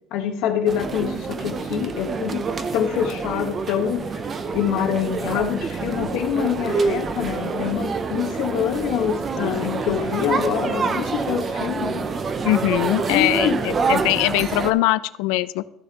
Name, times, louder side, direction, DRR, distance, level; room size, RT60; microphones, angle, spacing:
voice 1, 0.1-2.5 2.7-12.1 13.1-13.6, left 8 dB, 60° left, 4 dB, 1.2 m, -25 dB
sound 1, 0.7-14.7, right 4 dB, 20° right, 0.5 m, -27 dB
voice 2, 9.4-9.8 12.4-15.6, left 17 dB, 85° left, 16 dB, 0.4 m, -22 dB
14.0 x 6.7 x 2.9 m, 0.89 s
cardioid pair, 180°, 0 cm